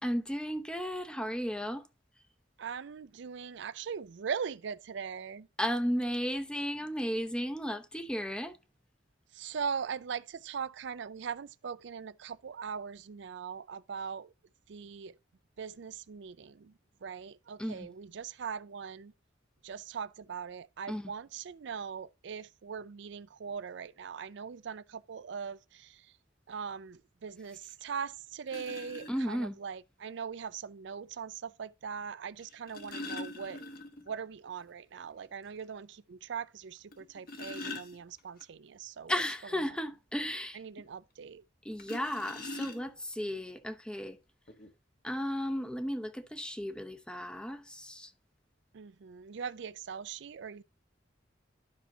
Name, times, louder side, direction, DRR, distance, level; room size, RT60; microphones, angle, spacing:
voice 1, 0.0-1.9 5.6-8.6 17.6-17.9 20.9-21.1 29.1-29.5 39.1-40.6 41.6-44.2 45.0-48.1, equal, 5° left, 0.7 m, -34 dB
voice 2, 2.6-5.5 9.3-14.3 14.7-15.2 15.6-19.1 19.6-26.1 26.5-33.7 34.1-39.1 40.5-41.4 48.7-50.6, right 6 dB, 65° right, 0.4 m, -40 dB
sound 1, 27.8-27.9 28.5-29.1 30.5-30.6 32.4-34.1 34.5-34.6 35.0-35.1 35.6-35.7 36.9-38.4 41.8-43.1 44.0-44.1 44.5-44.7, left 2 dB, 50° left, 1.3 m, -43 dB
12.5 x 5.7 x 2.8 m
head